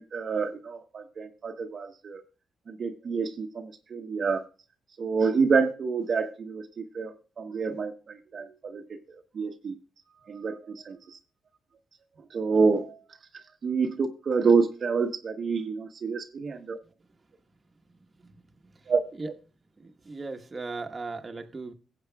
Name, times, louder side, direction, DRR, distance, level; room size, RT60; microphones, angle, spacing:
voice 1, 0.0-2.2 2.7-4.4 5.0-8.8 9.3-9.7 10.3-11.2 12.3-13.0 13.6-16.8 18.9-19.0, right 5 dB, 50° right, 1.0 m, -28 dB
voice 2, 19.8-21.7, right 3 dB, 30° right, 1.2 m, -37 dB
18.5 x 7.9 x 2.3 m
cardioid pair, 105°, 0 cm